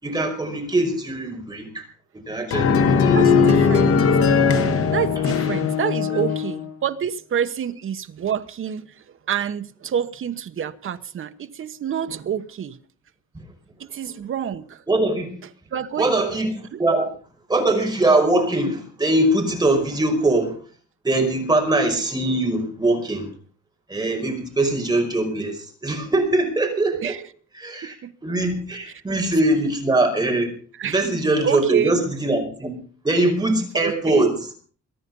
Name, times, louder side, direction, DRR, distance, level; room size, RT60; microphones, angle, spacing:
voice 1, 0.0-1.8 2.1-3.8 6.1-6.2 13.3-13.4 14.9-15.3 16.0-17.1 17.5-20.6 21.0-23.3 23.9-27.2 27.5-28.0 28.2-30.5 30.8-32.7 33.0-34.5, right 2 dB, 15° right, 5.1 m, -22 dB
sound 1, 2.5-6.7, left 5 dB, 50° left, 1.7 m, -18 dB
voice 2, 3.1-4.0 4.9-8.9 9.3-12.8 13.8-14.8 15.7-16.1 27.0-27.2 28.0-28.1 30.8-31.0 31.4-31.9 33.7-34.2, right 9 dB, 45° right, 1.2 m, -27 dB
23.5 x 10.0 x 5.4 m
cardioid pair, 170°, 30 cm